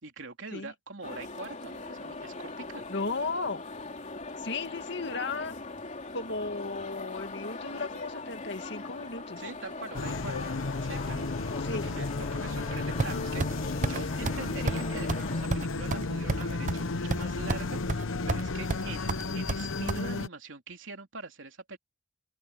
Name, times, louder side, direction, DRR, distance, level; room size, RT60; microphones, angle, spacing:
voice 1, 0.0-2.8 9.4-10.5 10.8-11.3 11.7-21.8, right 3 dB, 65° right, 3.7 m, -43 dB
sound 1, 1.0-15.5, left 3 dB, 40° left, 3.2 m, -41 dB
voice 2, 2.9-3.6 4.4-5.5 6.1-9.4 11.6-11.9, left 3 dB, 60° left, 1.9 m, -35 dB
sound 2, 9.9-20.3, left 3 dB, 75° left, 0.9 m, -33 dB
sound 3, 13.0-13.5 13.8-14.0 14.2-14.4 14.7-14.8 15.1-15.2 15.5-16.8 17.1-17.6 17.9-18.4 18.7-20.0, right 3 dB, 40° right, 0.7 m, -30 dB
open air
head